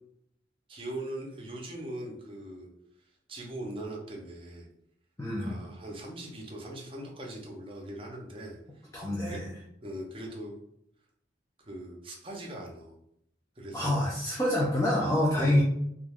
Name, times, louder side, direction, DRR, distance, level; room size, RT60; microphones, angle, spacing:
voice 1, 0.7-2.7 3.3-4.7 5.4-9.4 9.8-10.6 11.6-13.0 13.6-14.0 15.4-15.6, right 1 dB, 30° right, -1 dB, 0.6 m, -41 dB
voice 2, 5.2-5.6 8.9-9.5 13.7-15.6, left 1 dB, 15° left, -5 dB, 0.5 m, -26 dB
2.4 x 2.2 x 3.4 m, 0.74 s
head